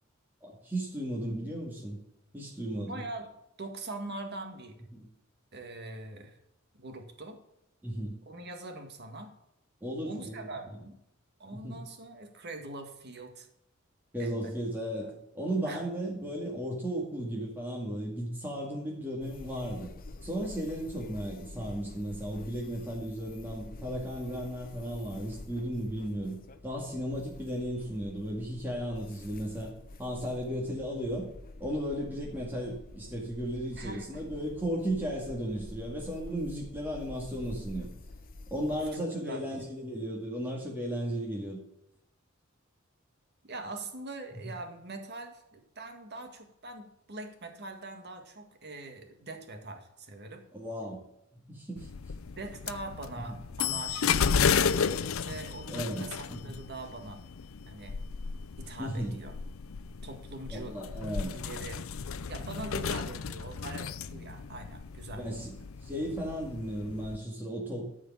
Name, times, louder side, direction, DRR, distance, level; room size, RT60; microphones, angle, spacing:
voice 1, 0.4-2.0 2.3-3.0 7.8-8.1 9.8-10.5 11.5-11.8 14.1-19.9 20.2-26.4 26.6-29.7 30.0-31.2 31.6-37.9 38.5-41.6 50.5-51.0 51.5-51.9 55.7-56.5 58.8-59.1 60.5-61.3 65.2-65.5 65.8-67.9, equal, 10° right, -3 dB, 2.1 m, -35 dB
voice 2, 2.7-3.3 3.6-4.8 5.5-6.4 6.7-7.4 8.3-9.3 10.0-11.0 11.4-13.5 14.2-14.5 15.0-15.1 15.7-15.8 33.8-34.2 38.7-39.5 43.4-50.4 52.4-54.8 55.2-57.2 57.7-58.0 58.6-59.4 60.0-60.8 61.2-61.8 62.3-65.3, right 2 dB, 55° right, 5 dB, 1.9 m, -42 dB
sound 1, 19.2-38.9, left 2 dB, 45° left, 0.8 m, -47 dB
sound 2, 51.8-67.2, left 6 dB, 75° left, 0.5 m, -33 dB
13.5 x 4.9 x 7.3 m, 0.82 s
head